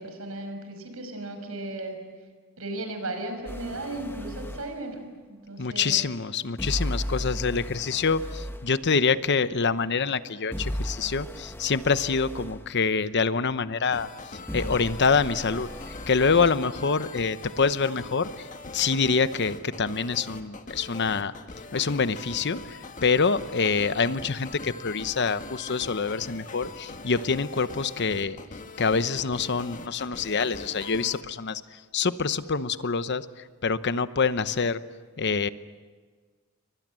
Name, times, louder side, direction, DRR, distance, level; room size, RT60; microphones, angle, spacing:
voice 1, 0.0-2.0 2.6-5.0 5.3-6.1 7.1-7.5, right 2 dB, 90° right, 6 dB, 5.9 m, -36 dB
sound 1, 3.5-4.7 6.6-8.7 10.5-12.6 14.5-16.6, equal, 10° left, 1.1 m, -35 dB
voice 2, 5.6-14.1 14.5-18.5 18.7-21.3 21.7-28.4 28.8-33.3 33.6-34.8 35.2-35.5, left 5 dB, 55° left, 13 dB, 0.9 m, -26 dB
sound 2, 13.9-31.2, left 3 dB, 40° left, 1.5 m, -42 dB
29.5 x 24.0 x 7.7 m, 1.5 s
head